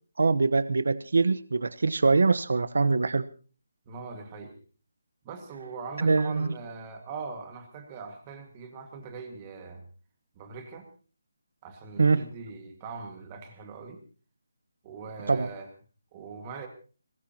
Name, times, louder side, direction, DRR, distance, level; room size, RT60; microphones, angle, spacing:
voice 1, 0.2-3.3 6.0-6.5 12.0-12.2 15.3-15.5, right 4 dB, 65° right, 14 dB, 1.1 m, -23 dB
voice 2, 3.9-4.6 5.2-9.9 10.4-10.9 11.6-14.0 14.8-15.7 16.1-16.7, right 4 dB, 15° right, 5 dB, 1.9 m, -41 dB
21.0 x 20.5 x 2.9 m, 0.38 s
hypercardioid pair, 180°, 0 cm